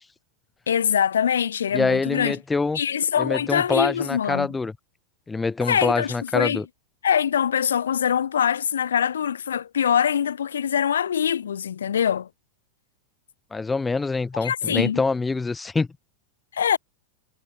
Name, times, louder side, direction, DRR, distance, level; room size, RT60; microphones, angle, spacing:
voice 1, 0.7-2.4 2.7-4.5 5.7-6.6 7.0-12.3 14.4-15.0 16.5-16.8, left 8 dB, 65° left, 0.6 m, -23 dB
voice 2, 1.7-2.8 3.2-4.7 5.3-6.6 13.5-15.9, left 4 dB, 10° left, 1.1 m, -25 dB
figure-of-eight pair, 90°, 0 cm